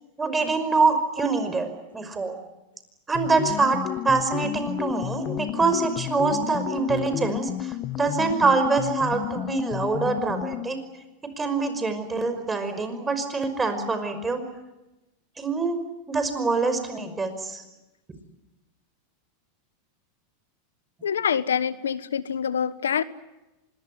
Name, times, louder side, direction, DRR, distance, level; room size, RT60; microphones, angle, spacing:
voice 1, 0.2-2.4 3.1-3.8 4.0-10.8 11.4-14.4 15.4-15.8 16.1-17.6, right 4 dB, 15° right, 5.5 m, -25 dB
sound 1, 3.1-10.8, left 13 dB, 45° left, 1.3 m, -32 dB
voice 2, 21.0-23.0, left 8 dB, 90° left, 1.2 m, -25 dB
25.5 x 22.0 x 9.6 m
hypercardioid pair, 105°, 0 cm